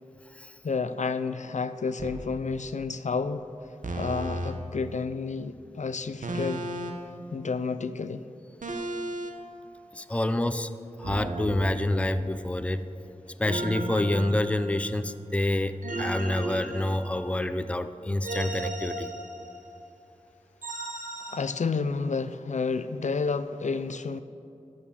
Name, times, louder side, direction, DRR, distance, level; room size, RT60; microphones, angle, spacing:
voice 1, 0.6-3.5 4.0-6.7 7.3-8.2 21.3-24.2, left 4 dB, 70° left, 0.4 m, -30 dB
sound 1, 2.0-2.2 3.8-4.5 6.2-7.1 8.6-9.3 11.0-12.5 13.4-15.0 15.8-17.5 18.2-19.7 20.6-21.4, right 2 dB, 85° right, 1.0 m, -34 dB
voice 2, 9.9-10.7 11.0-12.8 13.4-19.1, left 1 dB, 10° left, 0.4 m, -28 dB
11.0 x 6.5 x 7.2 m
wide cardioid pair, 70°, 13 cm